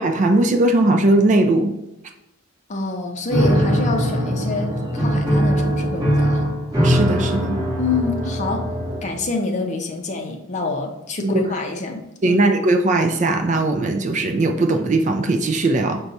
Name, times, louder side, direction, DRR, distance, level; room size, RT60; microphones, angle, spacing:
voice 1, 0.0-1.7 6.8-7.6 11.2-11.4 12.2-16.0, right 2 dB, 35° right, 5 dB, 0.3 m, -18 dB
voice 2, 2.7-6.6 7.8-8.7 9.0-12.4, left 3 dB, 35° left, 3 dB, 0.6 m, -26 dB
Piano, 3.3-9.2, equal, 20° right, 1.4 m, -21 dB
5.1 x 2.3 x 4.0 m, 0.90 s
head